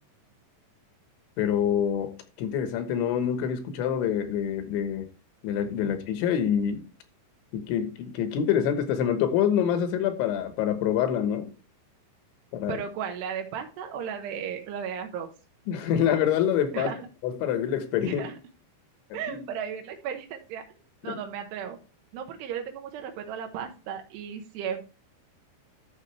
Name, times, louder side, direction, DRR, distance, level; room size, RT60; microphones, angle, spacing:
voice 1, 1.4-2.1 2.4-5.1 5.4-6.8 7.5-11.5 12.5-12.8 15.7-16.9 17.2-18.3 19.3-19.5 21.1-21.2, left 9 dB, 85° left, 3.6 m, -26 dB
voice 2, 12.7-15.3 16.7-17.0 18.0-18.3 19.1-20.6 21.0-21.8 22.1-24.8, right 8 dB, 75° right, 2.8 m, -35 dB
12.5 x 6.3 x 3.3 m
omnidirectional pair, 5.2 m